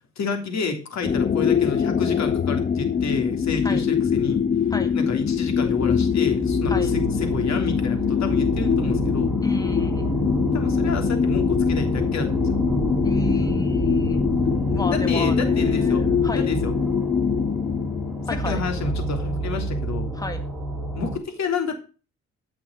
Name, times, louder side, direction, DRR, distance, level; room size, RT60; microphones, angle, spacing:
voice 1, 0.2-4.4 4.9-9.4 10.5-12.5 14.7-16.1 16.3-16.7 18.4-20.1 20.9-21.8, left 4 dB, 60° left, 6 dB, 3.2 m, -29 dB
sound 1, 1.0-19.2, left 7 dB, 30° left, 0.7 m, -23 dB
sound 2, 5.9-21.2, right 1 dB, 5° right, 4.0 m, -28 dB
voice 2, 9.4-10.1 13.0-14.2 14.7-16.5 18.3-18.6 20.1-20.4, left 2 dB, 10° left, 6 dB, 2.0 m, -31 dB
14.0 x 6.1 x 6.5 m, 0.35 s
cardioid pair, 90°, 30 cm